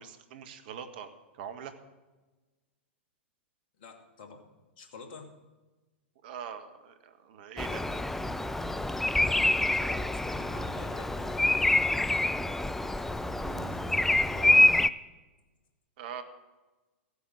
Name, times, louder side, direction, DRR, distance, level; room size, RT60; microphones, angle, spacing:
voice 1, 0.0-1.7 6.2-7.8 13.4-13.7 16.0-16.2, right 8 dB, 50° right, 8 dB, 1.3 m, -43 dB
voice 2, 3.8-4.5 4.8-5.3 9.2-12.3 13.7-14.6, left 4 dB, 50° left, 3 dB, 2.3 m, -49 dB
Bird vocalization bird call bird song, 7.6-14.9, left 2 dB, 5° left, 0.4 m, -26 dB
16.0 x 8.2 x 6.2 m, 1.2 s
figure-of-eight pair, 100°, 7 cm